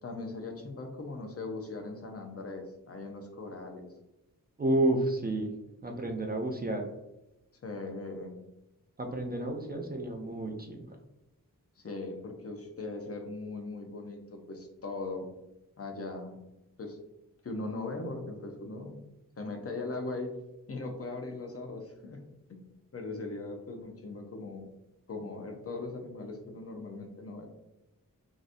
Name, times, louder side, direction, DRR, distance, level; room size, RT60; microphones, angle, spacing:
voice 1, 0.0-3.9 7.6-8.4 11.8-15.3 15.8-16.4 16.8-17.0 17.4-19.0 19.4-20.3 20.7-22.2 22.5-24.6 25.1-27.5, left 3 dB, 45° left, 3 dB, 0.7 m, -39 dB
voice 2, 4.6-5.5 5.8-6.9 9.0-11.0, right 2 dB, 30° right, 3 dB, 0.5 m, -30 dB
3.9 x 2.6 x 2.5 m, 0.95 s
wide cardioid pair, 80°, 34 cm